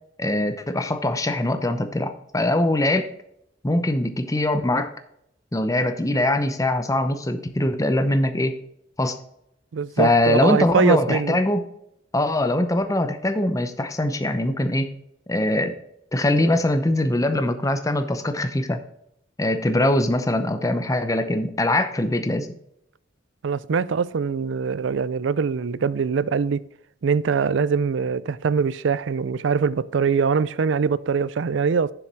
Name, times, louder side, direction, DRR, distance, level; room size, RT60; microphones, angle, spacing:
voice 1, 0.2-3.1 3.6-4.9 5.5-8.6 9.0-9.2 10.0-11.6 12.1-14.9 15.3-15.7 16.1-18.8 19.4-22.5, left 1 dB, 20° left, 0.7 m, -22 dB
voice 2, 9.7-11.4 23.4-26.6 27.0-31.9, right 5 dB, 75° right, 0.4 m, -23 dB
7.1 x 7.0 x 4.7 m
head